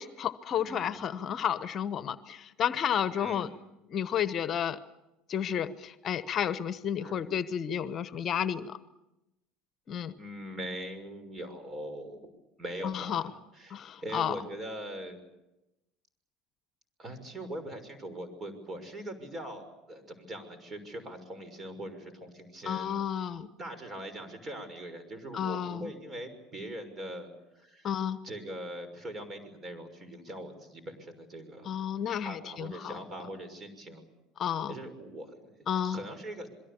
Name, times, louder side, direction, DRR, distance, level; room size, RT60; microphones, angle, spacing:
voice 1, 0.0-3.5 3.9-4.8 5.3-8.8 9.9-10.1 12.8-13.2 13.7-14.3 22.6-23.5 25.3-25.9 27.8-28.2 31.6-33.0 34.4-34.7 35.7-36.0, left 9 dB, 45° left, 14 dB, 1.0 m, -31 dB
voice 2, 0.6-1.0 3.2-3.5 7.0-7.4 10.2-12.2 12.6-15.2 17.0-23.1 23.6-27.3 27.5-27.9 28.2-31.7 32.2-34.1 34.7-35.5 35.8-36.5, right 1 dB, 30° right, 10 dB, 6.1 m, -41 dB
27.5 x 22.5 x 7.1 m, 0.95 s
hypercardioid pair, 75°, 0 cm